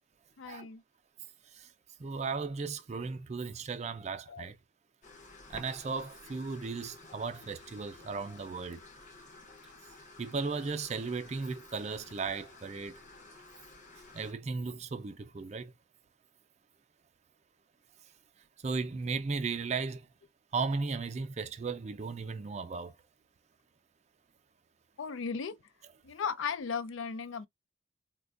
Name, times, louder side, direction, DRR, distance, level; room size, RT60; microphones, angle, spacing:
voice 1, 0.4-0.8 4.3-4.5 25.0-25.6 26.0-27.5, left 6 dB, 85° left, 0.5 m, -36 dB
voice 2, 2.0-4.6 5.5-8.8 10.2-13.0 14.1-15.7 18.6-20.0 20.5-22.9, right 4 dB, 35° right, 0.4 m, -36 dB
sound 1, 5.0-14.3, left 3 dB, 40° left, 0.7 m, -53 dB
4.1 x 2.2 x 2.4 m
head